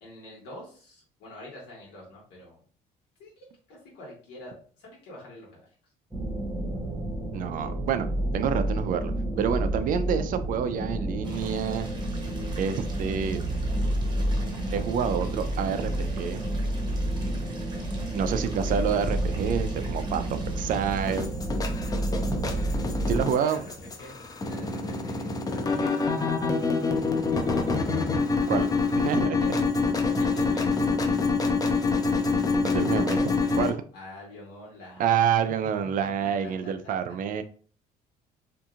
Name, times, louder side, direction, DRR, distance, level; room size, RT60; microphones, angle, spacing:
voice 1, 0.0-2.6 3.2-5.7 23.0-23.6 24.0-26.7 29.4-29.6 30.2-30.8 33.9-35.3 35.8-36.9, left 1 dB, 85° left, -4 dB, 1.5 m, -46 dB
sound 1, 6.1-23.2, right 1 dB, 5° right, 1.0 m, -30 dB
voice 2, 7.3-8.1 8.3-9.1 9.4-11.9 12.6-13.4 14.7-16.4 18.1-20.2 20.6-21.3 23.1-23.6 28.5-28.7 29.0-29.6 32.6-33.8 35.0-37.4, right 8 dB, 55° right, 10 dB, 0.4 m, -28 dB
sound 2, 11.2-21.2, right 2 dB, 25° right, 0.7 m, -48 dB
sound 3, 21.1-33.7, left 4 dB, 20° left, 0.4 m, -26 dB
2.8 x 2.5 x 2.4 m, 0.44 s
cardioid pair, 110°, 17 cm